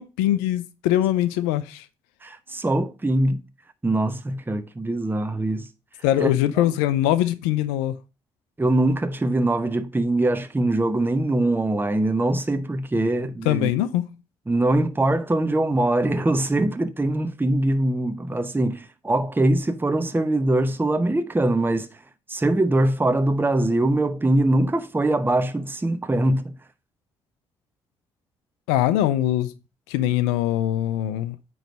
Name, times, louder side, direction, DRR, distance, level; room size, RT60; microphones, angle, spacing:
voice 1, 0.0-1.8 6.0-7.9 13.5-14.1 28.7-29.5 29.9-31.4, left 13 dB, 80° left, 0.4 m, -22 dB
voice 2, 2.2-3.4 3.8-5.7 6.2-6.3 8.6-13.7 14.5-21.9 22.3-26.5, right 1 dB, 15° right, 0.8 m, -22 dB
9.0 x 3.1 x 5.1 m
hypercardioid pair, 45°, 13 cm